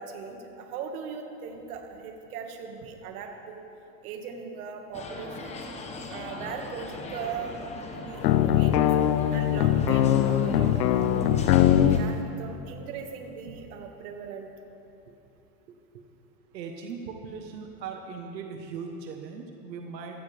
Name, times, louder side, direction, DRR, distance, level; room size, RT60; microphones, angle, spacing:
voice 1, 0.0-3.7 4.0-5.6 6.1-7.6 7.9-8.9 9.3-11.2 11.9-14.5, right 6 dB, 60° right, 3 dB, 1.9 m, -39 dB
sound 1, 4.9-12.0, left 2 dB, 15° left, 1.0 m, -40 dB
sound 2, 8.2-12.0, left 11 dB, 80° left, 0.7 m, -21 dB
voice 2, 15.7-16.0 16.5-20.2, right 5 dB, 90° right, 3 dB, 1.4 m, -39 dB
16.0 x 14.5 x 3.5 m, 2.8 s
supercardioid pair, 145°, 49 cm